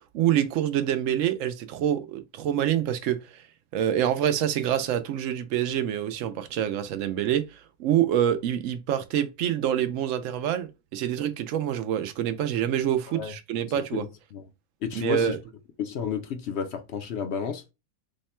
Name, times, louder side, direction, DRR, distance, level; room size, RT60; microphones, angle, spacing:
voice 1, 0.1-3.4 3.7-14.0 14.9-15.4, right 10 dB, 70° right, 0.9 m, -26 dB
voice 2, 13.9-14.4 14.8-15.4 15.8-17.6, left 7 dB, 60° left, 0.8 m, -31 dB
3.6 x 2.2 x 4.2 m
omnidirectional pair, 1.6 m